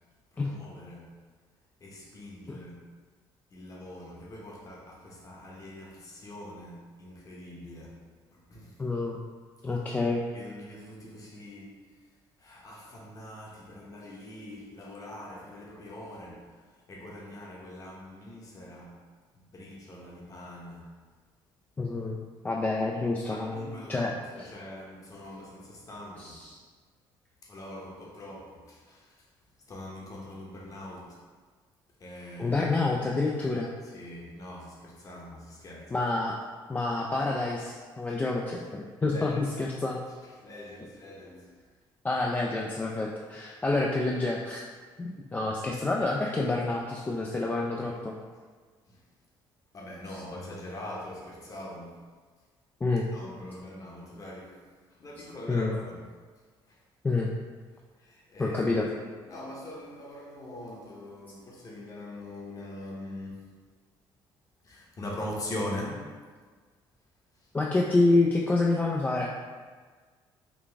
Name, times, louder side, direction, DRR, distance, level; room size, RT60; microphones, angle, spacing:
voice 1, 0.3-1.1 1.8-2.8 3.5-8.0 8.3-8.8 9.6-9.7 10.3-12.1 12.4-19.0 19.3-20.9 23.3-26.4 27.4-31.3 32.0-32.7 33.8-35.9 39.1-39.5 40.2-41.6 45.7-45.8 48.9-49.0 49.7-52.1 53.1-54.6 54.9-56.0 56.7-56.8 58.0-58.7 59.0-63.6 64.6-66.2 67.3-67.5, left 1 dB, 35° left, -2 dB, 0.9 m, -43 dB
voice 2, 8.8-9.2 9.6-10.2 21.8-22.2 22.4-24.1 24.4-24.5 26.2-26.6 32.4-33.7 35.9-36.4 36.7-40.0 42.0-44.7 45.0-48.1 52.8-53.1 55.5-55.7 57.0-57.3 58.4-58.9 67.5-69.3, left 2 dB, 20° left, -2 dB, 0.3 m, -28 dB
3.8 x 2.3 x 3.4 m, 1.5 s
cardioid pair, 95°, 10 cm